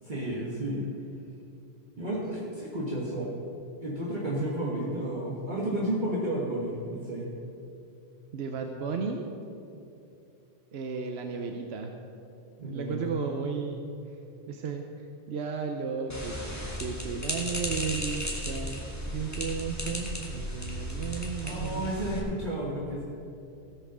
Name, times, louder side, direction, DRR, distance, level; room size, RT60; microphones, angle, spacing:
voice 1, 0.0-0.9 2.0-3.3 3.8-7.3 12.6-13.3 21.4-23.0, right 1 dB, 45° right, -6 dB, 1.7 m, -32 dB
voice 2, 8.3-9.3 10.7-11.9 12.6-13.9 14.5-14.8 15.3-22.0, right 5 dB, 75° right, 4 dB, 1.0 m, -34 dB
sound 1, 16.1-22.2, equal, 15° left, 1.7 m, -35 dB
17.0 x 5.6 x 6.2 m, 2.8 s
omnidirectional pair, 1.1 m